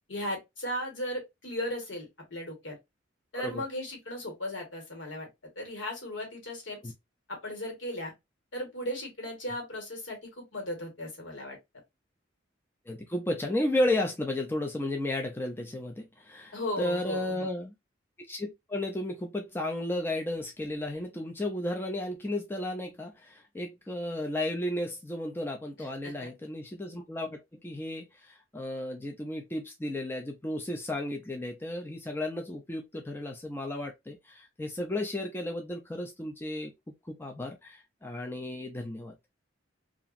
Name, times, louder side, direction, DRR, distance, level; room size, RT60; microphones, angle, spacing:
voice 1, 0.1-2.7 3.3-5.3 5.6-6.9 7.3-8.1 8.5-11.6 16.5-17.5 25.8-26.3, left 1 dB, 70° left, 1.4 m, -36 dB
voice 2, 12.9-17.7 18.3-36.7 37.1-39.1, left 1 dB, 10° left, 0.3 m, -33 dB
2.9 x 2.4 x 2.4 m
head